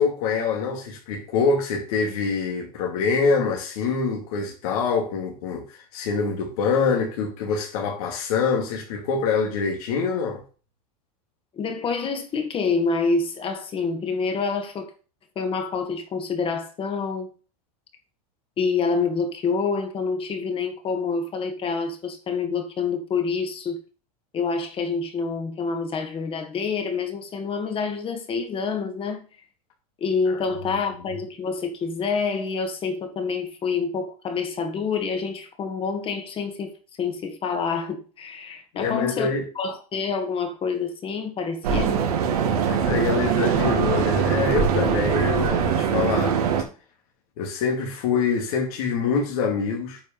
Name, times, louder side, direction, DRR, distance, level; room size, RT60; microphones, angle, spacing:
voice 1, 0.0-10.4 30.3-30.4 30.7-30.8 38.7-39.4 42.6-46.4 47.4-50.0, left 5 dB, 70° left, 2.7 m, -25 dB
voice 2, 11.5-14.9 15.4-17.3 18.6-23.8 24.3-29.3 30.0-39.3 39.6-42.1, left 5 dB, 30° left, 2.0 m, -27 dB
sound 1, 41.6-46.6, right 7 dB, 85° right, 2.6 m, -22 dB
9.0 x 5.3 x 5.3 m
supercardioid pair, 130°, 19 cm